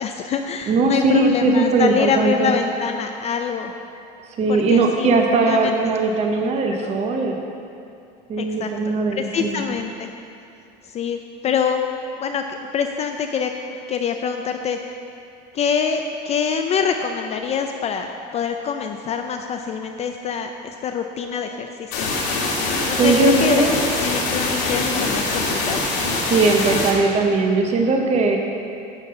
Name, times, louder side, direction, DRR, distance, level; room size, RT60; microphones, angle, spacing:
voice 1, 0.0-3.7 4.5-5.1 5.4-5.7 6.8-6.9 8.4-10.1 10.9-11.9 12.2-14.8 15.5-22.1 22.8-23.6 24.0-25.8, left 6 dB, 30° left, 5 dB, 0.4 m, -25 dB
voice 2, 0.7-2.5 4.4-7.4 8.3-9.6 23.0-23.7 26.2-28.4, right 3 dB, 30° right, 2 dB, 0.7 m, -19 dB
sound 1, 21.9-26.9, left 3 dB, 75° left, 1.8 m, -23 dB
9.1 x 4.0 x 6.5 m, 2.6 s
supercardioid pair, 125°, 21 cm